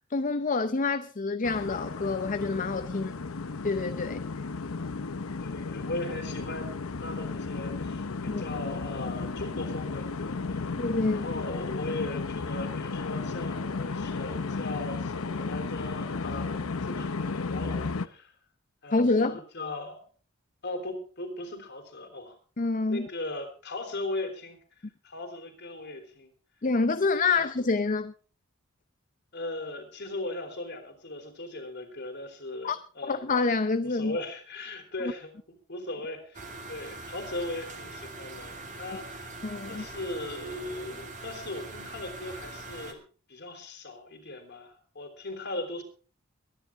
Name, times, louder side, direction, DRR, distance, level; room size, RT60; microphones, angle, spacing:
voice 1, 0.1-3.1 3.6-4.2 8.3-8.4 10.8-11.2 18.9-19.4 22.6-23.1 26.6-28.1 32.6-32.8 33.1-34.2 39.4-39.8, left 3 dB, 40° left, 0.7 m, -27 dB
sound 1, 1.4-18.1, left 4 dB, 85° left, 0.8 m, -34 dB
voice 2, 5.4-6.7 7.0-10.8 11.1-18.3 18.8-20.0 20.6-22.4 22.9-24.6 25.0-26.3 27.3-27.4 29.3-33.2 33.8-35.3 35.7-39.4 39.7-43.0 43.3-45.8, left 2 dB, 55° left, 3.5 m, -38 dB
sound 2, 36.3-42.9, right 3 dB, 40° right, 2.6 m, -42 dB
23.0 x 10.5 x 3.6 m
head